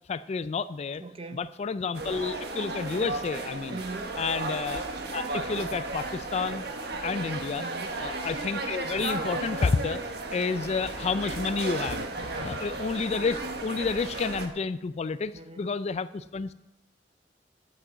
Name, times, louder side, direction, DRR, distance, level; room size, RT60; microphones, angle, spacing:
voice 1, 0.1-1.0 1.3-3.8 4.2-4.8 5.1-6.6 7.0-7.7 8.0-10.0 10.3-16.5, left 4 dB, 40° left, 0.3 m, -30 dB
voice 2, 1.0-1.5 3.7-4.2 7.6-8.0 12.2-12.6 15.3-15.6, right 3 dB, 35° right, 0.7 m, -41 dB
sound 1, 1.9-14.5, right 2 dB, 65° right, 1.4 m, -34 dB
11.0 x 6.1 x 7.7 m
head